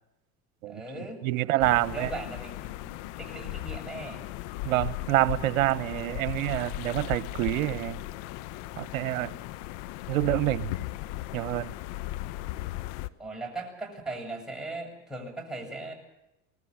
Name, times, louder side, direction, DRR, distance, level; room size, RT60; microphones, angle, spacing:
voice 1, 0.7-4.3 13.2-15.9, right 2 dB, ahead, 7.9 m, -39 dB
voice 2, 1.2-2.1 4.6-8.0 8.8-9.3 10.1-10.7 11.3-11.7, right 16 dB, 70° right, 1.1 m, -27 dB
sound 1, 1.6-13.1, left 16 dB, 60° left, 1.1 m, -37 dB
24.0 x 20.0 x 7.2 m
hypercardioid pair, 75°, 42 cm